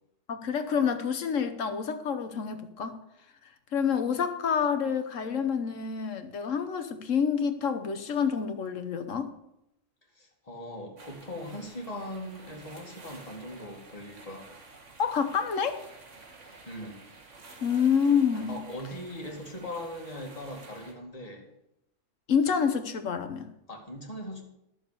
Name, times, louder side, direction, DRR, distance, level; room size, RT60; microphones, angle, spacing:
voice 1, 0.3-3.0 3.7-9.3 15.0-15.8 17.6-18.6 22.3-23.5, left 7 dB, 75° left, 9 dB, 1.4 m, -28 dB
voice 2, 10.1-14.5 16.7-17.0 18.5-21.5 23.7-24.4, left 1 dB, 30° left, 0 dB, 2.3 m, -40 dB
sound 1, 11.0-20.9, right 3 dB, 70° right, 2.0 m, -51 dB
11.5 x 7.1 x 6.7 m, 0.83 s
omnidirectional pair, 1.3 m